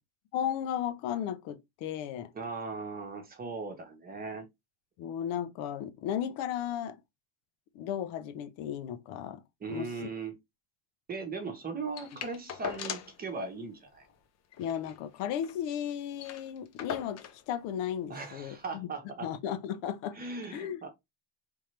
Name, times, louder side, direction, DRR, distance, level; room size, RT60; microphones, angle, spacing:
voice 1, 0.3-2.3 5.0-7.0 7.7-9.4 9.7-9.9 14.6-18.6 19.2-20.2 20.5-20.8, left 9 dB, 75° left, 0.8 m, -35 dB
voice 2, 2.3-4.4 9.6-10.4 11.1-14.1 18.1-19.3 20.1-20.9, right 4 dB, 20° right, 1.0 m, -38 dB
sound 1, 12.0-13.2 13.6-13.7 13.9-14.1 14.5-15.6 15.9-16.0 16.2-17.4 18.3-18.4, left 8 dB, 35° left, 0.7 m, -40 dB
4.5 x 3.6 x 3.2 m
cardioid pair, 170°, 46 cm